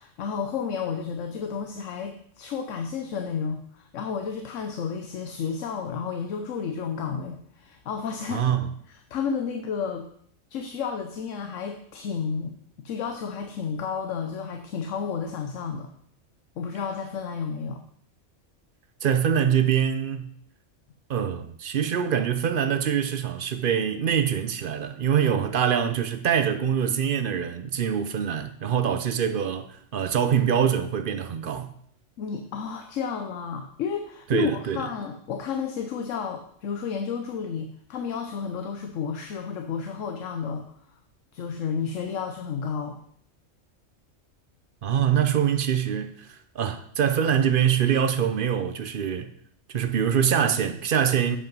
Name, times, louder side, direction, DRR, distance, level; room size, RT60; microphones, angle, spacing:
voice 1, 0.0-8.4 8.9-10.1 10.5-15.9 16.6-17.8 32.2-40.7 41.3-43.0, left 6 dB, 85° left, 1.1 m, -31 dB
voice 2, 8.3-8.7 19.0-20.3 21.1-31.7 34.3-34.9 44.8-49.3 49.7-51.4, right 8 dB, 55° right, 0.7 m, -24 dB
8.4 x 5.3 x 5.3 m
omnidirectional pair, 1.3 m